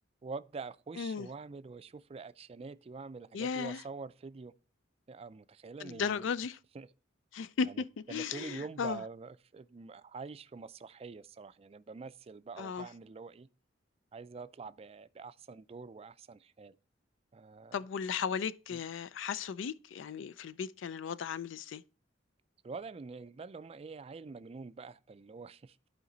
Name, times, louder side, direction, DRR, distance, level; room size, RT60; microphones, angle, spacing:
voice 1, 0.2-4.5 5.1-6.3 6.7-6.9 7.7-13.5 14.1-16.8 17.3-17.8 18.7-18.8 22.6-25.9, right 4 dB, 30° right, 0.4 m, -46 dB
voice 2, 1.0-1.3 3.3-3.8 5.8-6.6 7.3-7.7 8.1-9.0 12.6-12.9 17.7-21.8, left 6 dB, 80° left, 0.4 m, -36 dB
11.5 x 5.0 x 3.9 m
head